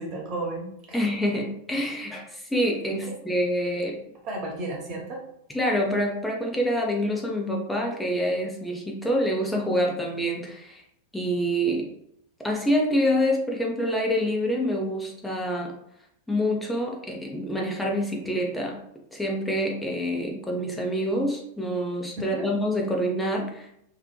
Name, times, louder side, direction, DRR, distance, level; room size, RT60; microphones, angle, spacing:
voice 1, 0.0-1.0 2.9-3.2 4.2-5.2 22.2-22.5, right 2 dB, 40° right, 0 dB, 0.7 m, -33 dB
voice 2, 0.9-4.0 5.5-10.8 11.1-11.9 12.4-15.7 16.3-18.8 19.1-23.7, equal, 5° left, 0 dB, 0.5 m, -26 dB
2.6 x 2.1 x 2.2 m, 0.74 s
figure-of-eight pair, 90°, 0 cm